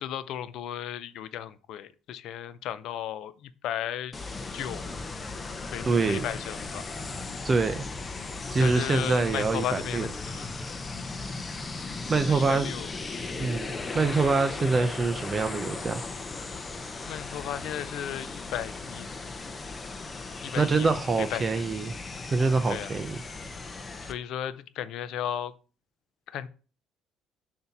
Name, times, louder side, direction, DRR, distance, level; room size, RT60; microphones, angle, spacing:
voice 1, 0.0-4.1 4.5-4.9 5.7-6.9 8.6-10.5 12.3-12.9 17.1-19.1 20.4-20.9 21.3-21.5 22.7-22.9 24.0-25.5 26.3-26.5, left 10 dB, 70° left, 14 dB, 0.5 m, -35 dB
sound 1, 4.1-24.1, left 3 dB, 25° left, 0.7 m, -37 dB
voice 2, 5.9-6.3 7.4-7.9 8.5-10.1 12.1-12.7 13.4-16.0 20.6-21.9 22.3-23.2, right 4 dB, 30° right, 9 dB, 0.6 m, -25 dB
6.7 x 2.8 x 5.7 m, 0.37 s
cardioid pair, 105°, 0 cm